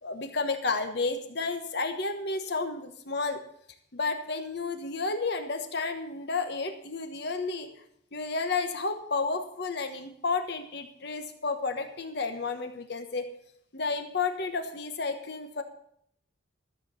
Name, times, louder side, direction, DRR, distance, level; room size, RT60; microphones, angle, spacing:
voice 1, 0.0-3.4 3.9-7.7 8.1-13.3 13.7-15.6, left 4 dB, 55° left, 7 dB, 1.2 m, -31 dB
13.5 x 7.5 x 7.3 m, 0.68 s
head